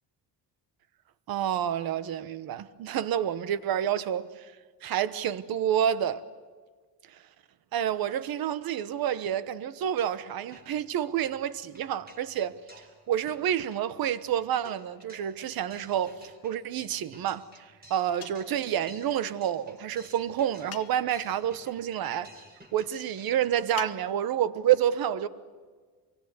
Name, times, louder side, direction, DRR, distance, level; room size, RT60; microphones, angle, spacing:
voice 1, 1.3-4.5 4.8-6.2 7.1-7.2 7.7-12.6 13.1-22.3 22.7-25.3, right 10 dB, 55° right, 1.1 m, -29 dB
sound 1, 9.8-10.3 10.5-23.4, right 1 dB, 20° right, 4.9 m, -54 dB
sound 2, 18.2-18.6 20.7-21.2 23.8-24.4, left 9 dB, 35° left, 0.9 m, -43 dB
25.0 x 24.0 x 9.5 m
cardioid pair, 170°, 42 cm